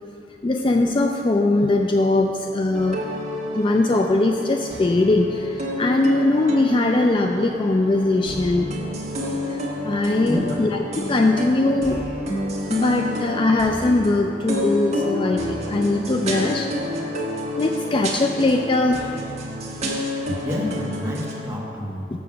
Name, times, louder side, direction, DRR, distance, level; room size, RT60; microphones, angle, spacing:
voice 1, 0.4-3.1 3.5-8.7 9.5-12.0 12.7-16.7 17.0-17.1 17.6-19.2 20.3-20.4, left 2 dB, 30° left, 3 dB, 0.3 m, -21 dB
sound 1, 2.7-21.4, equal, 40° right, 1.4 m, -29 dB
voice 2, 10.3-10.6 20.4-22.1, left 1 dB, 15° right, -5 dB, 1.5 m, -29 dB
6.9 x 6.7 x 6.3 m, 2.9 s
head